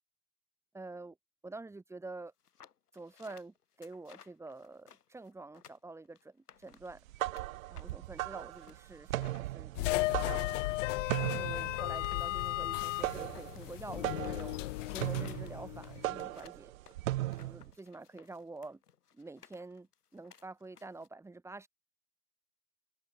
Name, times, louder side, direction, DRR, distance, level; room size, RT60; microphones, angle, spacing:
voice 1, 0.7-1.2 1.4-2.3 2.9-7.0 7.7-10.5 11.2-14.6 14.9-16.7 17.4-18.8 19.1-21.7, right 3 dB, 5° right, 2.2 m, -47 dB
sound 1, 2.4-7.5 7.8-21.1, left 8 dB, 80° left, 7.3 m, -60 dB
sound 2, 6.9-17.7, right 16 dB, 60° right, 0.9 m, -38 dB
sound 3, 9.7-16.3, left 18 dB, 55° left, 0.7 m, -35 dB
hypercardioid pair, 110°, 45 cm